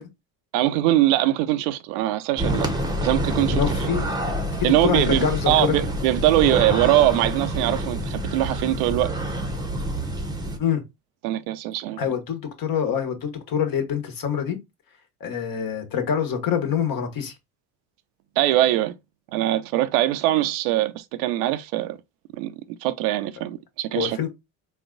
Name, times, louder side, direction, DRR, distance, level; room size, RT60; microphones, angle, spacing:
voice 1, 0.5-2.7 3.0-3.6 4.6-9.1 11.2-12.0 18.4-19.0 19.3-22.0 22.3-22.5 22.8-24.2, right 14 dB, 80° right, 0.7 m, -22 dB
sound 1, 2.4-10.6, right 1 dB, 10° right, 0.8 m, -27 dB
voice 2, 3.5-4.1 4.6-5.8 10.6-10.8 12.0-14.6 15.2-17.3 23.9-24.3, left 8 dB, 50° left, 1.3 m, -25 dB
4.0 x 2.3 x 3.8 m
hypercardioid pair, 70°, 45 cm